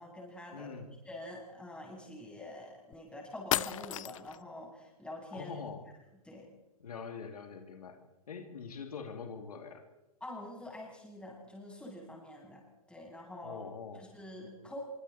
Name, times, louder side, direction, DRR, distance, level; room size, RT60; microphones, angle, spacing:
voice 1, 0.0-0.7 1.0-5.5 6.2-6.5 10.2-12.6 12.9-13.6 14.0-14.8, left 1 dB, 5° left, -2 dB, 8.0 m, -46 dB
voice 2, 0.5-0.9 5.3-5.8 6.8-8.0 8.3-9.8 13.4-14.0, left 5 dB, 75° left, 5 dB, 2.9 m, -44 dB
sound 1, 2.9-3.0 3.5-4.4, left 13 dB, 60° left, 0.7 m, -33 dB
25.0 x 24.5 x 4.4 m, 1.0 s
hypercardioid pair, 120°, 19 cm